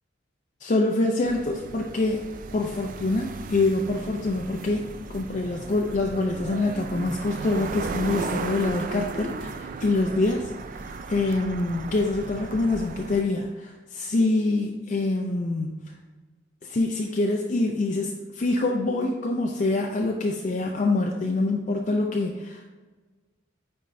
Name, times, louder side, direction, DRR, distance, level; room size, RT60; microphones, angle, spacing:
voice 1, 0.6-2.2 2.5-4.8 5.1-10.5 10.8-15.8 16.6-22.6, left 2 dB, 40° left, 1 dB, 0.4 m, -25 dB
sound 1, 1.2-13.2, right 4 dB, 45° right, 0.3 m, -36 dB
9.0 x 4.3 x 2.6 m, 1.3 s
head